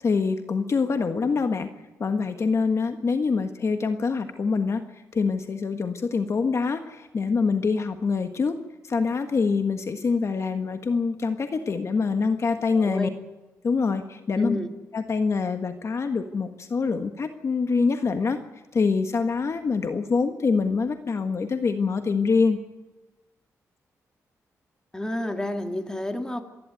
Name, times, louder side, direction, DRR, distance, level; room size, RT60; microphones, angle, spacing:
voice 1, 0.0-1.7 2.0-4.8 5.1-8.6 8.8-13.1 13.6-14.6 14.9-18.4 18.7-22.6, left 4 dB, 50° left, 7 dB, 1.5 m, -25 dB
voice 2, 12.7-13.1 14.4-14.7 24.9-26.4, left 1 dB, 10° left, 6 dB, 2.5 m, -30 dB
27.0 x 11.5 x 9.2 m, 1.1 s
cardioid pair, 85°, 6 cm